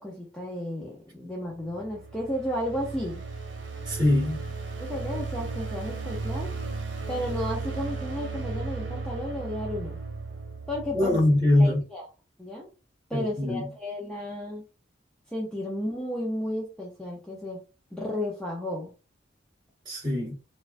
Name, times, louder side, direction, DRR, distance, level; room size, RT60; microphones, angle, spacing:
voice 1, 0.0-3.2 4.8-6.5 7.1-10.0 10.7-11.2 11.5-12.1 12.4-12.7 13.1-14.6 15.3-17.6 17.9-18.9, left 1 dB, 5° left, 0.6 m, -33 dB
sound 1, 1.6-11.8, right 3 dB, 80° right, 0.9 m, -35 dB
voice 2, 3.9-4.5 10.9-11.8 13.1-13.6 19.9-20.3, left 1 dB, 25° right, 1.9 m, -23 dB
4.2 x 2.4 x 2.5 m
head